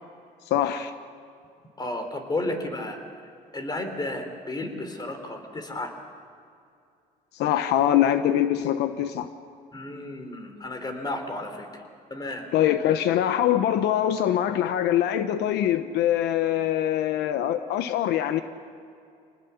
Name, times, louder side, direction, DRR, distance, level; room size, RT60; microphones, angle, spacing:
voice 1, 0.5-0.9 7.3-9.3 12.5-18.4, left 11 dB, 85° left, 10 dB, 1.0 m, -23 dB
voice 2, 1.8-3.0 3.5-5.9 9.7-11.8 12.1-12.5, left 2 dB, 25° left, 6 dB, 3.7 m, -32 dB
26.5 x 19.5 x 7.1 m, 2.5 s
cardioid pair, 110°, 17 cm